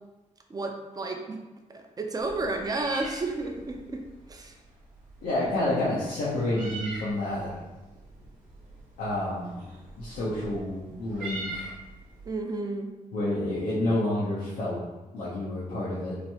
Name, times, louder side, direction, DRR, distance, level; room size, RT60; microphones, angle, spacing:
voice 1, 0.5-1.4 1.7-4.0 4.3-4.5 12.3-12.9, right 2 dB, 25° right, 3 dB, 0.5 m, -32 dB
Meow, 2.2-12.3, right 2 dB, 80° right, 0.7 m, -43 dB
voice 2, 5.2-7.5 9.0-9.6 10.0-11.7 13.1-14.8 15.1-16.2, left 1 dB, 85° left, -9 dB, 0.7 m, -29 dB
3.0 x 2.2 x 2.8 m, 1.1 s
cardioid pair, 60°, 14 cm